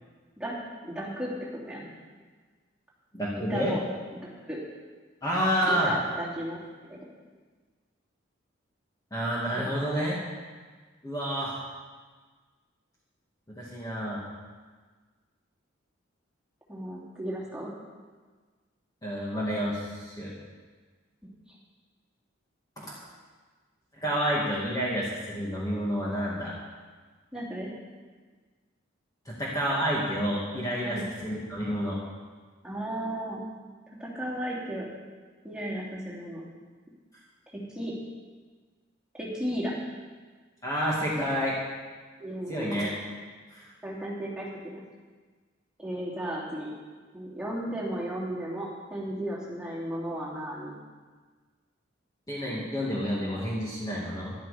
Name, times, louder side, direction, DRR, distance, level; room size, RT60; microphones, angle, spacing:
voice 1, 0.8-1.3 1.6-1.9 3.4-3.8 4.1-4.6 5.7-7.1 16.7-17.7 27.3-27.7 30.8-31.1 32.6-33.4 33.9-34.9 35.4-36.4 37.5-37.9 39.1-39.7 42.2-42.9 43.8-44.5 45.8-46.7 47.1-50.7, right 1 dB, 5° right, -7 dB, 3.0 m, -34 dB
voice 2, 3.1-3.7 5.2-5.9 9.1-10.2 11.0-11.6 13.5-14.2 19.0-20.3 22.8-22.9 24.0-26.5 29.3-32.0 40.6-41.6 42.5-42.9 43.5-43.7 52.3-54.3, equal, 20° left, -6 dB, 2.2 m, -29 dB
12.5 x 12.0 x 5.1 m, 1.4 s
head